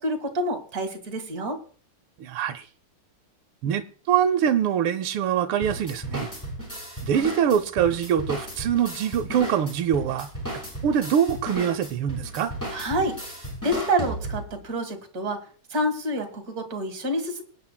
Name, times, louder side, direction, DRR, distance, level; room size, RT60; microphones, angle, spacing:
voice 1, 0.0-1.6 12.7-13.4 13.6-15.4 15.7-17.4, right 1 dB, 45° right, 2.1 m, -28 dB
voice 2, 2.2-2.7 3.6-6.3 7.0-10.3 10.8-12.5, right 9 dB, 85° right, 1.6 m, -24 dB
sound 1, 5.6-14.5, equal, 10° left, 5.5 m, -35 dB
23.5 x 9.4 x 2.2 m
omnidirectional pair, 2.3 m